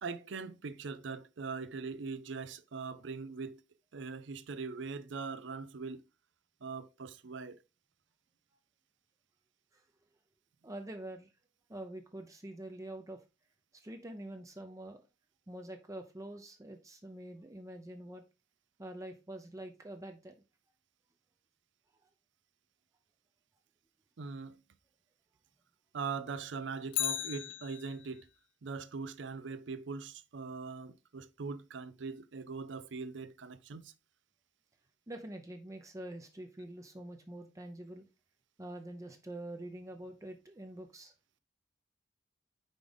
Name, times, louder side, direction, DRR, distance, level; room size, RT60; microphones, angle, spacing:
voice 1, 0.0-3.6 3.9-6.0 6.6-7.6 24.2-24.6 25.9-28.3 28.6-33.9, right 4 dB, 65° right, 0.5 m, -41 dB
voice 2, 10.6-11.3 11.7-13.2 13.8-15.0 15.5-18.2 18.8-20.4 35.1-38.1 38.6-41.1, right 1 dB, 15° right, 0.6 m, -45 dB
Bicycle, 26.9-28.3 36.6-36.7, left 13 dB, 65° left, 0.4 m, -37 dB
5.2 x 4.8 x 3.9 m
head